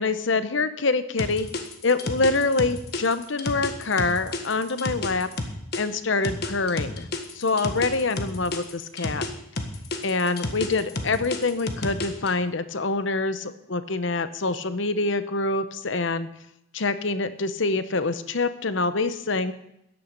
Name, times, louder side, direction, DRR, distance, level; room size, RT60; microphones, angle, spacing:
voice 1, 0.0-1.5 1.8-5.3 5.8-7.1 7.3-9.3 10.0-16.3 16.7-19.5, left 3 dB, 65° left, 12 dB, 0.9 m, -25 dB
sound 1, 1.2-5.8 6.2-9.3 9.6-12.3, left 2 dB, 50° left, 1.6 m, -30 dB
14.0 x 10.5 x 5.3 m, 0.79 s
head